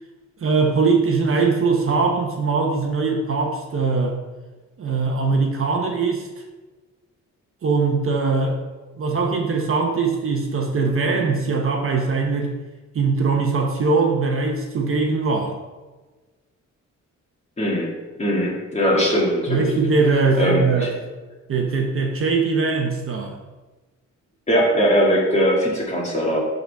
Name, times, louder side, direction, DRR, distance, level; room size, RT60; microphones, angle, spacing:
voice 1, 0.4-4.2 4.8-6.3 7.6-8.6 9.0-12.5 12.9-15.6 19.5-20.9 21.5-23.4, right 4 dB, 45° right, 2 dB, 0.9 m, -21 dB
voice 2, 17.6-17.9 18.2-19.7 20.4-20.9 24.5-26.4, equal, 20° left, -4 dB, 2.1 m, -20 dB
11.0 x 4.0 x 3.5 m, 1.2 s
cardioid pair, 125°, 30 cm